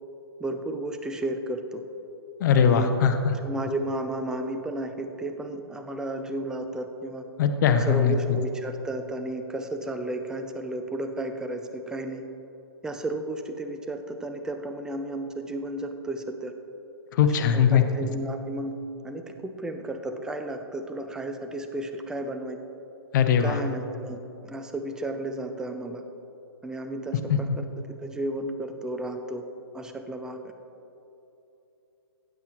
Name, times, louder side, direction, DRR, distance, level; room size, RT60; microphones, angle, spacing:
voice 1, 0.4-1.8 2.5-7.2 7.8-12.2 12.8-16.5 17.2-18.8 19.0-22.6 23.4-26.0 26.6-27.7 28.0-29.4 29.7-30.4, right 1 dB, 5° right, 6 dB, 0.4 m, -33 dB
voice 2, 2.4-3.3 7.4-8.1 17.2-17.8 23.1-23.6 27.3-27.4, left 7 dB, 45° left, 7 dB, 0.7 m, -20 dB
15.0 x 8.1 x 3.0 m, 2.9 s
hypercardioid pair, 140°, 13 cm